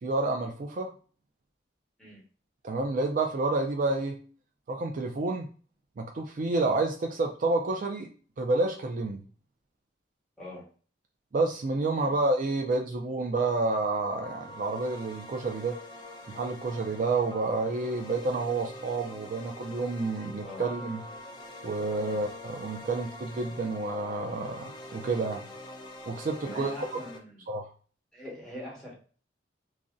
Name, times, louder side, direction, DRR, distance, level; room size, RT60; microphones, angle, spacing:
voice 1, 0.0-0.9 2.6-4.2 4.7-5.5 6.0-8.1 8.4-9.2 11.3-15.8 16.3-21.0 21.6-25.4 26.1-27.0 27.5-27.7, right 3 dB, 45° right, 3 dB, 0.4 m, -29 dB
voice 2, 10.4-10.7 12.0-12.1 20.4-20.7 22.0-22.2 26.4-27.4 28.1-28.9, left 1 dB, 5° left, -5 dB, 1.1 m, -42 dB
sound 1, 14.0-27.2, left 1 dB, 25° left, 0.5 m, -44 dB
2.6 x 2.1 x 3.6 m, 0.39 s
head